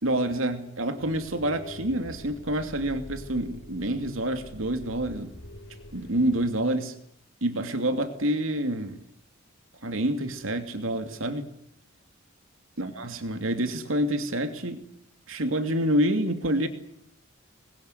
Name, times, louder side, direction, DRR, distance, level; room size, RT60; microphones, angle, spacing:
voice 1, 0.0-5.3 5.9-7.0 7.4-9.0 9.8-11.5 12.8-14.8 15.3-16.7, right 1 dB, 90° right, 7 dB, 2.7 m, -27 dB
sound 1, 1.0-6.5, left 1 dB, 60° left, 6.0 m, -45 dB
27.0 x 21.5 x 9.7 m, 0.72 s
head